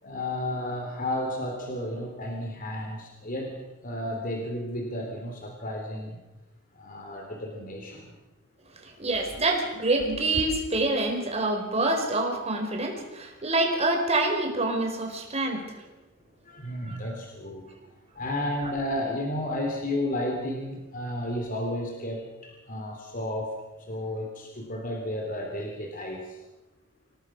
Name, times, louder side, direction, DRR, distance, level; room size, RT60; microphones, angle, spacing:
voice 1, 0.0-3.6 3.8-6.2 6.7-8.1 16.4-17.7 18.1-23.5 23.8-26.4, left 1 dB, 40° left, 2 dB, 3.4 m, -32 dB
voice 2, 8.8-15.6 16.9-17.2, right 2 dB, 30° right, 2 dB, 4.6 m, -26 dB
27.5 x 18.0 x 6.2 m, 1.1 s
head